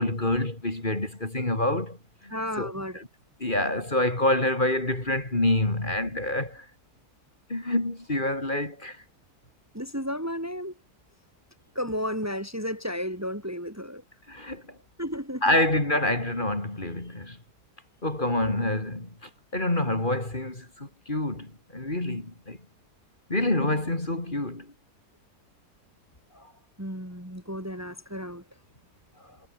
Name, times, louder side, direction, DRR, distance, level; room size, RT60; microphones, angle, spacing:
voice 1, 0.0-2.0 2.2-3.1 3.4-6.7 7.5-9.0 14.3-14.8 15.4-17.4 18.0-22.6 23.3-24.7 26.3-26.5, left 1 dB, 30° left, 3.7 m, -27 dB
voice 2, 2.3-3.0 9.7-10.8 11.7-14.0 15.0-15.6 26.8-28.4, equal, 10° right, 3.2 m, -33 dB
omnidirectional pair, 1.7 m